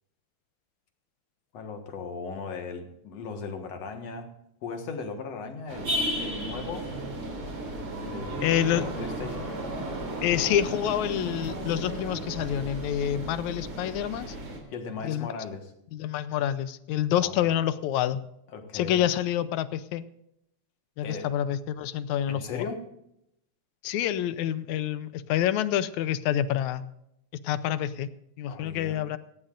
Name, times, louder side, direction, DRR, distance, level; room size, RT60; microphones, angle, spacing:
voice 1, 1.5-4.3 4.6-6.9 8.0-9.6 14.7-15.7 17.1-17.4 18.5-19.1 21.0-21.3 22.3-22.9 28.5-29.1, left 4 dB, 60° left, 5 dB, 2.5 m, -37 dB
sound 1, 5.7-14.6, right 1 dB, 45° right, 4.0 m, -34 dB
voice 2, 8.4-8.8 10.2-14.4 15.0-15.3 15.9-18.2 18.7-20.0 21.0-22.6 23.8-26.8 27.4-28.1 28.4-29.2, left 11 dB, 80° left, 14 dB, 2.0 m, -27 dB
18.0 x 15.5 x 2.5 m, 0.79 s
omnidirectional pair, 3.4 m